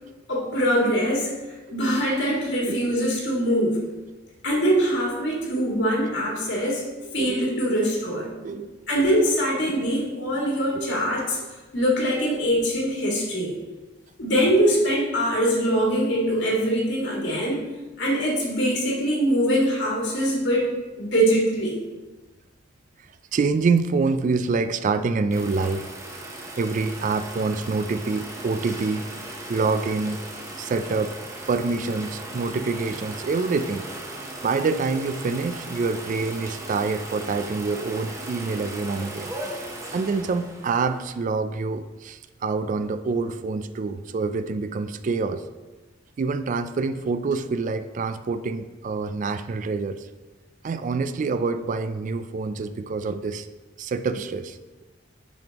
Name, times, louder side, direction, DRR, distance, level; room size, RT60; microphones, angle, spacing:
voice 1, 0.3-3.8 4.4-6.8 7.1-8.3 8.9-11.4 11.7-13.5 14.2-17.6 18.0-20.7 21.0-21.8, equal, 70° left, -3 dB, 2.1 m, -23 dB
voice 2, 7.2-7.5 8.4-8.7 9.0-9.1 9.7-9.8 10.8-10.9 23.3-25.9 26.6-29.1 29.5-30.3 30.6-31.2 31.5-33.9 34.4-39.3 39.9-45.5 46.2-50.1 50.6-53.5 53.8-54.8, right 4 dB, 45° right, 11 dB, 0.3 m, -26 dB
sound 1, 25.3-41.2, right 1 dB, 15° right, 0.9 m, -37 dB
9.2 x 5.2 x 2.9 m, 1.2 s
head